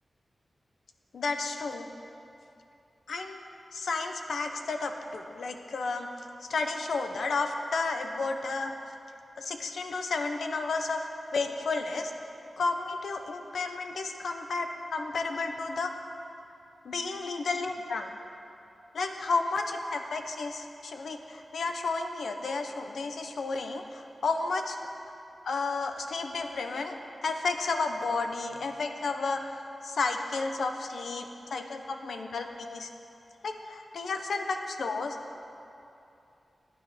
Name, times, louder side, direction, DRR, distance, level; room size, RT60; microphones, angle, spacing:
voice 1, 1.1-1.9 3.1-3.4 3.7-6.1 6.5-8.8 9.4-12.1 12.6-15.9 16.8-18.1 18.9-24.8 25.4-27.0 27.2-32.9 33.4-35.2, left 3 dB, 85° left, 5 dB, 0.8 m, -32 dB
11.5 x 8.9 x 5.8 m, 2.7 s
wide cardioid pair, 165°, 0 cm